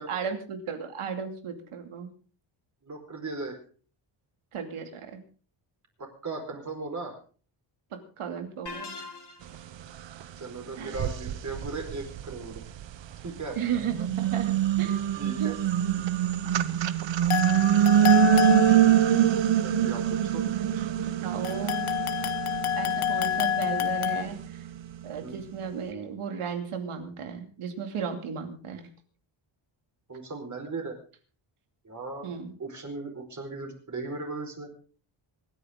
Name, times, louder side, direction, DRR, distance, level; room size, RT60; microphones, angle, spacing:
voice 1, 0.0-2.1 4.5-5.2 7.9-8.9 10.8-11.0 13.6-15.0 15.4-15.5 16.5-16.6 17.9-18.8 20.5-21.9 22.8-24.7 25.0-28.9 32.2-32.5, right 7 dB, 80° right, 6 dB, 2.7 m, -35 dB
voice 2, 2.8-3.6 6.0-7.2 10.4-12.6 13.2-13.6 15.2-15.6 19.6-20.5 25.2-25.4 30.1-31.0 31.8-32.3 32.6-34.7, right 3 dB, 35° right, 3 dB, 4.6 m, -37 dB
sound 1, 8.7-9.7, left 4 dB, 50° left, 3.0 m, -41 dB
sound 2, 10.2-10.3 10.9-13.2 13.7-25.0, right 10 dB, 60° right, 0.9 m, -25 dB
sound 3, 17.3-19.3 21.4-24.2, left 11 dB, 80° left, 1.7 m, -28 dB
25.5 x 10.0 x 3.7 m, 0.39 s
cardioid pair, 115°, 50 cm